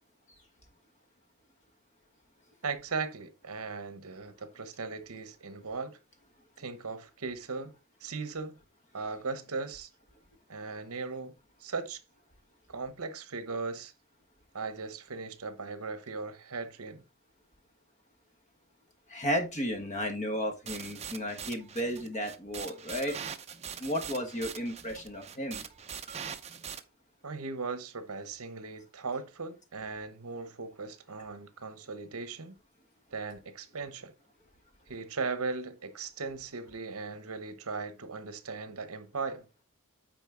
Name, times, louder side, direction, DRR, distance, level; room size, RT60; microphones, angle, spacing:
voice 1, 2.6-6.0 6.6-8.6 8.9-9.9 10.5-11.3 11.6-12.0 12.7-13.9 14.5-17.0 27.2-32.5 33.1-34.1 34.9-39.5, right 4 dB, 70° right, 1.0 m, -38 dB
voice 2, 19.1-23.2 23.8-25.6, equal, 30° left, 1.4 m, -33 dB
sound 1, 20.7-26.8, right 7 dB, 30° right, 0.6 m, -42 dB
9.0 x 4.1 x 3.8 m
head